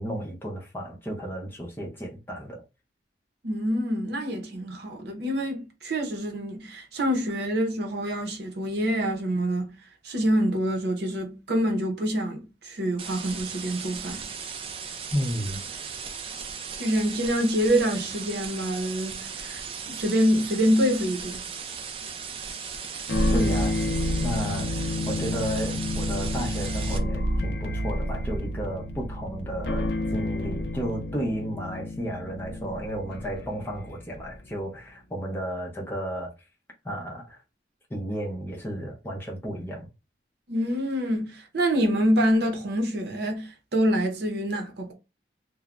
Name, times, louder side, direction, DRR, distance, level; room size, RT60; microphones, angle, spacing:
voice 1, 0.0-2.6 15.1-15.6 23.3-23.9 24.2-36.3 36.8-37.4 37.9-39.9, equal, 10° left, 0.6 m, -33 dB
voice 2, 3.4-9.7 10.0-14.2 16.8-21.4 40.5-44.9, equal, 65° right, 0.7 m, -26 dB
sound 1, 13.0-27.0, right 6 dB, 30° right, 0.3 m, -37 dB
sound 2, 23.1-34.5, left 1 dB, 65° left, 0.4 m, -29 dB
3.1 x 2.0 x 2.4 m
head